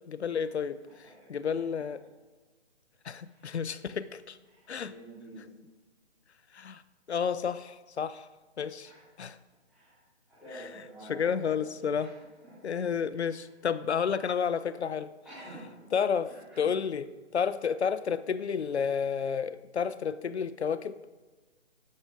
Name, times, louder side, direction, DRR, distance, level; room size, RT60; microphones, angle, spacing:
voice 1, 0.1-0.8 1.3-2.0 3.0-4.4 4.7-4.9 6.5-6.8 7.1-8.3 8.6-8.9 9.2-9.4 11.1-12.1 12.6-15.1 15.9-17.0 17.3-21.0, left 7 dB, 70° left, 15 dB, 0.7 m, -31 dB
voice 2, 1.0-1.4 1.7-1.8 3.2-3.5 4.5-5.5 8.8-9.0 9.7-10.0 10.3-11.6 12.0-12.6 13.3-13.5 15.2-15.9 16.2-16.7, right 1 dB, ahead, -14 dB, 3.8 m, -49 dB
12.5 x 9.9 x 4.9 m, 1.3 s
hypercardioid pair, 175°, 35 cm